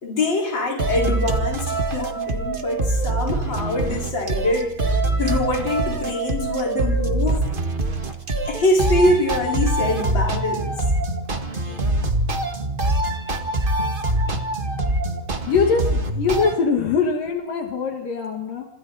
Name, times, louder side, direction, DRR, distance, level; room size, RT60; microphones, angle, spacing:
voice 1, 0.0-4.7 5.2-7.5 8.5-10.7 11.6-11.8, left 1 dB, 30° left, -1 dB, 5.1 m, -24 dB
sound 1, 0.8-16.5, right 2 dB, 35° right, 0.8 m, -24 dB
voice 2, 15.5-18.7, left 5 dB, 70° left, 3 dB, 3.6 m, -22 dB
27.0 x 26.5 x 4.2 m, 0.76 s
omnidirectional pair, 4.0 m